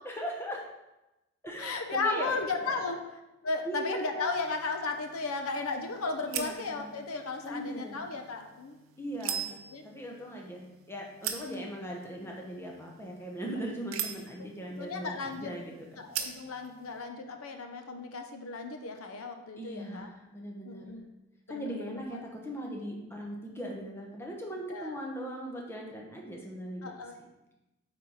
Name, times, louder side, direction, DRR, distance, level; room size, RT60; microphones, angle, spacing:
voice 1, 0.0-0.6 1.4-2.9 3.6-4.4 6.2-6.9 7.4-8.2 9.0-9.6 9.8-15.7 19.6-20.9 21.5-26.9, equal, 10° left, -1 dB, 1.0 m, -39 dB
voice 2, 1.6-3.0 3.4-8.8 9.7-9.9 14.8-15.5 16.0-20.1 20.6-21.0 21.5-22.2 24.7-25.0 26.8-27.1, left 3 dB, 85° left, 5 dB, 0.8 m, -35 dB
sound 1, 4.3-17.0, right 8 dB, 75° right, 0.7 m, -43 dB
8.3 x 4.5 x 4.0 m, 0.97 s
head